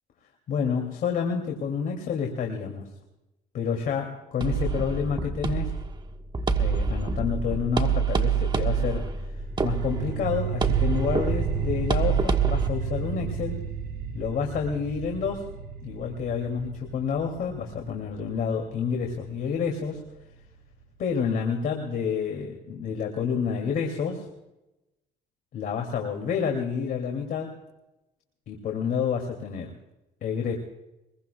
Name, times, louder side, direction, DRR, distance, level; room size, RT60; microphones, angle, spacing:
voice 1, 0.5-2.9 3.5-5.8 6.6-9.1 9.3-13.6 14.1-15.5 15.8-20.1 21.0-24.3 25.5-27.6 28.5-29.7 30.2-30.5, left 6 dB, 60° left, 2 dB, 2.7 m, -29 dB
sound 1, 4.4-12.7, right 5 dB, 25° right, 1.4 m, -27 dB
sound 2, 9.4-20.4, right 7 dB, 65° right, 4.1 m, -33 dB
23.5 x 21.5 x 2.3 m, 0.96 s
cardioid pair, 110°, 17 cm